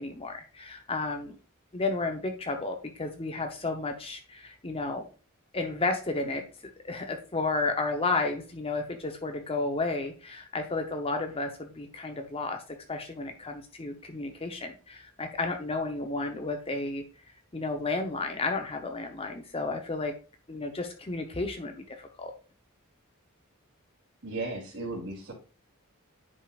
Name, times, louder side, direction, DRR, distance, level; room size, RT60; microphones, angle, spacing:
voice 1, 0.0-1.4 1.7-5.0 5.5-6.4 6.8-12.6 12.9-17.0 17.5-20.1 20.5-22.3, left 3 dB, 25° left, 4 dB, 0.8 m, -32 dB
voice 2, 24.2-25.3, right 2 dB, 55° right, -5 dB, 3.0 m, -35 dB
10.0 x 5.5 x 2.4 m, 0.37 s
head